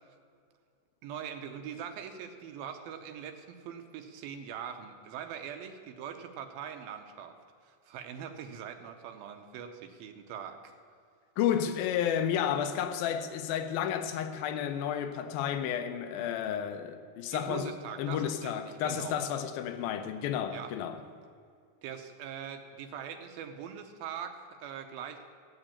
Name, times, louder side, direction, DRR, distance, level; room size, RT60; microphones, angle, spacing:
voice 1, 1.0-7.3 7.6-10.8 17.3-18.5 18.8-19.2 20.5-20.7 21.8-25.3, right 8 dB, 80° right, 2.6 m, -42 dB
voice 2, 11.4-17.7 18.0-21.0, left 9 dB, 80° left, 2.7 m, -31 dB
15.5 x 7.9 x 8.6 m
omnidirectional pair, 4.2 m